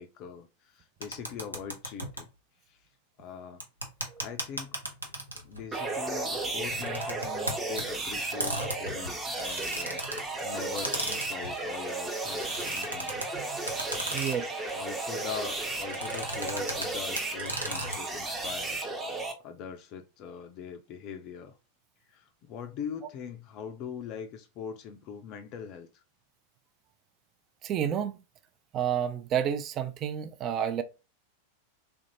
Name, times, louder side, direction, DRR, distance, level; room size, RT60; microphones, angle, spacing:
voice 1, 0.0-2.3 2.7-2.9 3.2-3.6 4.2-4.8 5.4-13.1 14.7-18.9 19.4-21.6 22.0-26.0, left 7 dB, 40° left, 0.4 m, -42 dB
sound 1, 1.0-2.2 3.6-5.6 6.6-7.8 8.4-10.2 10.8-11.5 12.3-13.3 13.7-14.5 15.9-16.9 17.2-18.0, right 1 dB, 85° right, 0.7 m, -35 dB
sound 2, 5.7-19.3, right 2 dB, 15° right, 0.8 m, -34 dB
voice 2, 13.3-13.7 14.1-14.5 27.6-28.2 28.7-30.8, right 9 dB, 30° right, 0.4 m, -30 dB
3.4 x 2.5 x 2.9 m
figure-of-eight pair, 90°, 0 cm